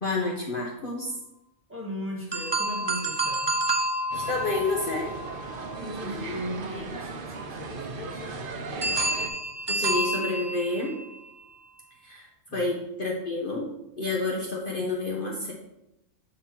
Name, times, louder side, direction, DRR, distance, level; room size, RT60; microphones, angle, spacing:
voice 1, 0.0-1.1 4.1-5.1 9.7-10.9 12.0-13.7 14.0-15.5, left 2 dB, 45° left, -1 dB, 1.0 m, -29 dB
voice 2, 1.7-3.5 5.8-9.1 12.5-12.7, equal, 10° right, -3 dB, 1.6 m, -37 dB
sound 1, 2.3-6.4 8.8-11.1, right 2 dB, 30° right, 0.5 m, -29 dB
sound 2, 4.1-9.3, right 4 dB, 50° right, 0.8 m, -38 dB
7.9 x 4.1 x 4.4 m, 0.87 s
omnidirectional pair, 1.3 m